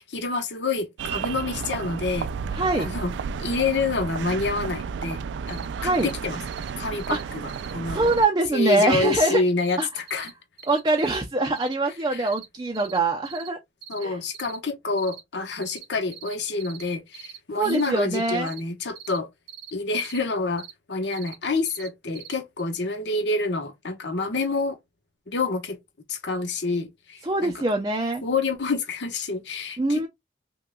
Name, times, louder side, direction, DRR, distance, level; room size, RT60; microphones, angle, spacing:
voice 1, 0.1-2.3 2.7-3.1 3.4-5.2 5.5-6.4 6.8-8.1 8.5-10.3 12.1-12.3 13.9-19.3 19.7-24.8 25.3-25.8 26.1-27.6 28.2-30.1, left 3 dB, 80° left, 1.0 m, -28 dB
sound 1, 1.0-8.3, right 6 dB, 85° right, 0.3 m, -32 dB
voice 2, 2.5-2.9 5.8-6.1 7.1-7.2 7.9-9.4 9.8-9.9 10.7-13.6 14.0-14.2 17.6-18.5 27.2-28.2 29.8-30.1, right 2 dB, 25° right, 0.5 m, -23 dB
sound 2, 5.5-5.7 5.9-6.2 6.5-6.7 7.0-7.2 7.5-7.7 8.0-8.3 8.5-8.8 9.1-9.3 9.6-9.8 10.1-10.3 10.6-11.2 11.5-11.7 12.3-12.5 12.7-13.0 13.2-13.5 13.8-14.0 14.3-14.6 15.0-15.2 15.6-15.8 16.1-16.3 16.6-16.8 17.1-17.4 17.6-17.9 18.1-18.6 18.9-19.2 19.5-20.2 20.6-20.7 21.1-21.4 21.6-21.9 22.1-22.3 22.6-22.7, right 9 dB, 60° right, 0.8 m, -42 dB
5.6 x 2.3 x 2.2 m
head